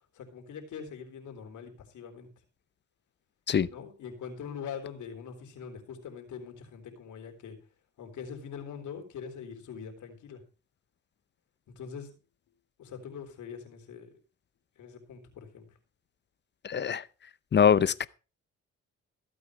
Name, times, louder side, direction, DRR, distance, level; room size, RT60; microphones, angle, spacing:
voice 1, 0.1-2.3 3.7-7.6 8.0-10.4 11.8-12.1 12.8-14.2 14.8-15.6, left 7 dB, 75° left, 3.7 m, -43 dB
voice 2, 16.6-17.0 17.5-18.1, left 7 dB, 35° left, 0.7 m, -23 dB
15.5 x 8.6 x 4.9 m
cardioid pair, 90°, 30 cm